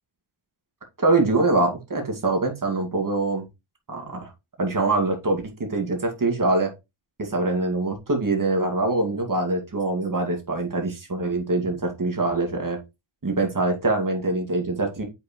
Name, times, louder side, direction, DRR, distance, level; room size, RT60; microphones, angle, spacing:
voice 1, 1.0-3.4 3.9-4.3 4.6-6.7 7.2-12.8 13.2-15.0, right 2 dB, 40° right, 3 dB, 2.4 m, -24 dB
7.7 x 5.7 x 3.2 m, 0.24 s
wide cardioid pair, 120°, 48 cm